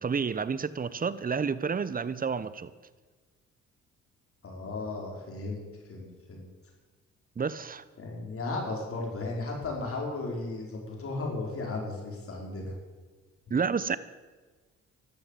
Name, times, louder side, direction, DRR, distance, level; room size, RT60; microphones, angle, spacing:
voice 1, 0.0-2.7 7.4-7.8 13.5-14.0, right 5 dB, 30° right, 0.9 m, -30 dB
voice 2, 4.4-5.6 5.9-6.5 8.0-12.7, left 2 dB, 45° left, 5.0 m, -35 dB
13.5 x 12.0 x 8.4 m
cardioid pair, 90°, 30 cm